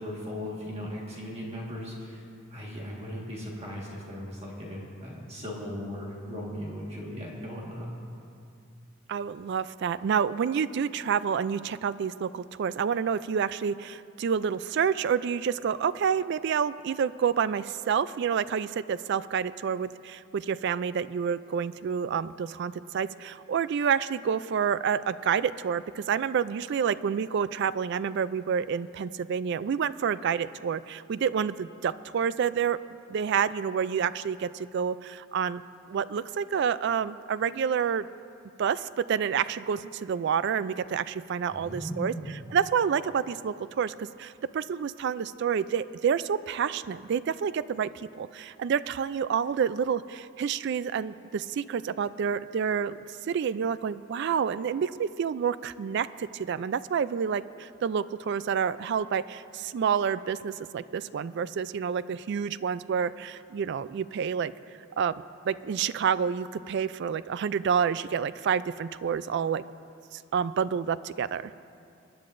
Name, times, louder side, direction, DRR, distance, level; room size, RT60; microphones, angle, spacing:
voice 1, 0.0-7.9 41.5-42.3, equal, 30° right, -3 dB, 1.6 m, -38 dB
voice 2, 9.1-32.8 33.1-35.6 35.9-38.1 38.6-53.0 53.3-64.5 65.0-69.6 70.1-71.5, right 7 dB, 55° right, 16 dB, 0.3 m, -28 dB
25.5 x 10.5 x 2.6 m, 2.5 s
head